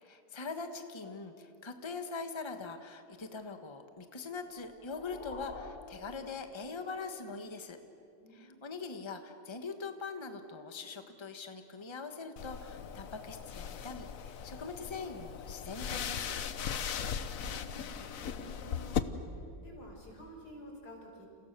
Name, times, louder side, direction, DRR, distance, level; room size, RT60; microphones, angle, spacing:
voice 1, 0.0-7.8 8.3-16.3, left 4 dB, 20° left, 7 dB, 1.4 m, -42 dB
sound 1, 4.5-7.1, left 4 dB, 40° left, 1.1 m, -49 dB
voice 2, 8.2-8.8 17.1-21.3, equal, 85° left, 0 dB, 6.3 m, -52 dB
sound 2, 12.4-19.0, left 8 dB, 60° left, 1.3 m, -38 dB
30.0 x 29.0 x 6.9 m, 2.6 s
omnidirectional pair, 1.7 m